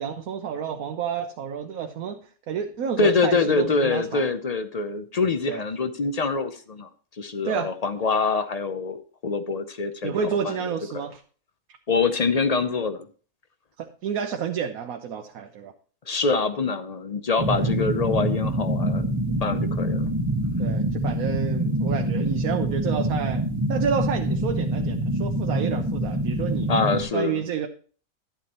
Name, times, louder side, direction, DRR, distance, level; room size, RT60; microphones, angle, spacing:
voice 1, 0.0-4.3 5.5-5.6 7.4-7.7 10.0-11.2 13.8-15.7 17.5-17.7 20.6-26.7 27.1-27.7, right 7 dB, 85° right, 5 dB, 1.2 m, -30 dB
voice 2, 3.0-6.9 7.2-10.1 10.4-11.0 11.9-13.1 16.1-19.1 19.4-20.1 26.7-27.4, left 4 dB, 50° left, 10 dB, 0.4 m, -25 dB
sound 1, 17.4-27.0, right 1 dB, 10° right, 1.5 m, -25 dB
11.5 x 8.2 x 2.9 m, 0.40 s
omnidirectional pair, 1.5 m